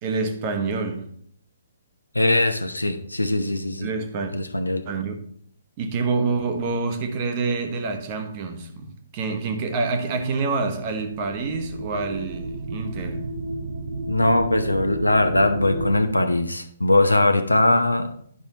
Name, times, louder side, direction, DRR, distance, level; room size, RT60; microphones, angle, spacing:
voice 1, 0.0-1.1 3.8-4.3 4.8-5.1 5.8-13.3, right 4 dB, 30° right, 1.0 m, -27 dB
voice 2, 2.1-3.9 4.3-4.9 14.1-18.1, left 2 dB, 80° left, 0.8 m, -21 dB
sound 1, 10.6-16.0, right 2 dB, 55° right, 0.9 m, -32 dB
11.0 x 5.5 x 2.9 m
figure-of-eight pair, 130°, 0 cm